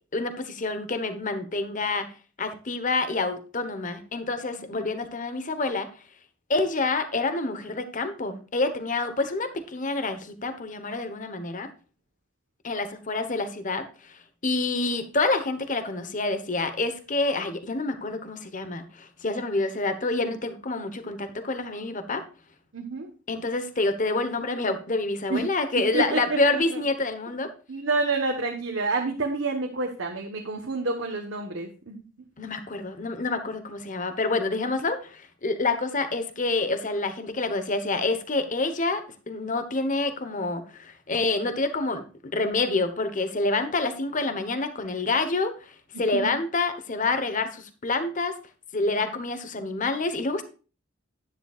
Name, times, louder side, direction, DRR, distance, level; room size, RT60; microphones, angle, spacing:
voice 1, 0.1-2.1 2.4-5.9 6.5-11.7 12.6-22.2 23.3-27.5 32.4-45.5 46.0-48.3 48.7-50.4, left 3 dB, 40° left, 9 dB, 1.1 m, -27 dB
voice 2, 22.7-23.1 25.3-25.4 25.7-26.4 27.7-32.0 45.9-46.4, right 3 dB, 65° right, 2 dB, 1.2 m, -29 dB
11.0 x 10.5 x 2.4 m, 0.36 s
head